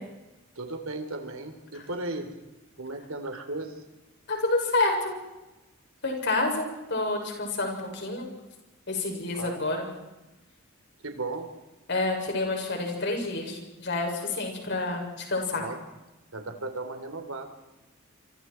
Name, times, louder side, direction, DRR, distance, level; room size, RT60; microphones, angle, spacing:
voice 1, 0.6-2.4 2.8-3.8 9.3-9.7 11.0-11.5 15.5-15.8 16.3-17.5, right 2 dB, 75° right, 6 dB, 3.7 m, -36 dB
voice 2, 4.3-5.2 6.0-8.3 8.9-9.9 11.9-15.6, left 2 dB, 55° left, 1 dB, 7.0 m, -28 dB
27.5 x 27.0 x 4.7 m, 1.0 s
head